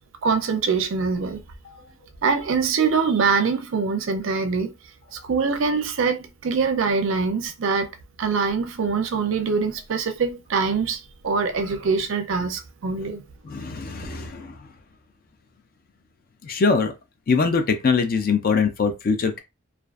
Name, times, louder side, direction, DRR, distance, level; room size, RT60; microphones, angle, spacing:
voice 1, 0.2-1.4 2.2-4.8 5.1-7.9 8.2-13.2, right 5 dB, 60° right, 0.4 m, -23 dB
voice 2, 13.4-14.5 16.4-16.9 17.3-19.4, left 5 dB, 40° left, 0.4 m, -22 dB
2.4 x 2.4 x 2.3 m
head